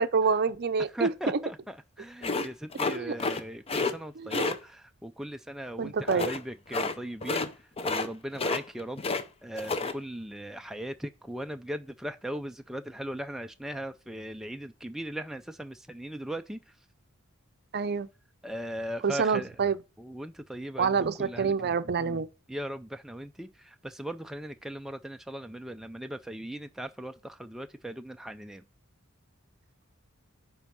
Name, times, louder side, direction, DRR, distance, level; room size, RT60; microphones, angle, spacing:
voice 1, 0.0-1.4 2.9-3.2 4.2-4.4 5.8-6.3 17.7-18.1 19.0-19.8 20.8-22.3, right 5 dB, 50° right, 0.5 m, -27 dB
voice 2, 0.9-7.5 7.8-9.0 9.4-16.6 18.4-19.5 20.0-21.5 22.5-28.6, right 1 dB, ahead, 0.3 m, -38 dB
sound 1, 2.2-3.4 3.7-3.9 4.3-4.6 6.1-6.4 6.7-6.9 7.2-7.5 7.8-8.1 8.3-9.2 9.5-9.9, left 3 dB, 30° left, 0.6 m, -29 dB
9.8 x 3.5 x 5.9 m
head